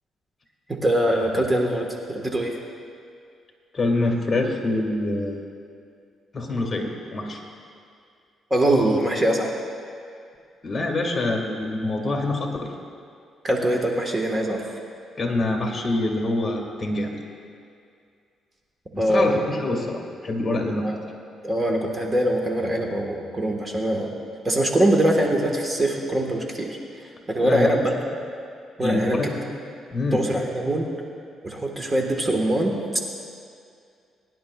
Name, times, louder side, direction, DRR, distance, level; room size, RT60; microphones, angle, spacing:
voice 1, 0.7-2.6 8.5-9.5 13.4-14.6 19.0-19.4 20.8-21.0 21.4-24.1 24.4-26.8 27.3-27.9 28.8-29.3 30.1-30.9 31.4-33.0, right 1 dB, 20° right, 1 dB, 1.4 m, -23 dB
voice 2, 3.7-5.4 6.3-7.4 10.6-12.7 15.2-17.1 18.9-20.9 27.4-27.8 28.8-29.5 29.9-30.2, left 2 dB, 30° left, 1 dB, 1.9 m, -25 dB
22.5 x 10.5 x 2.4 m, 2.3 s
cardioid pair, 90°, 0 cm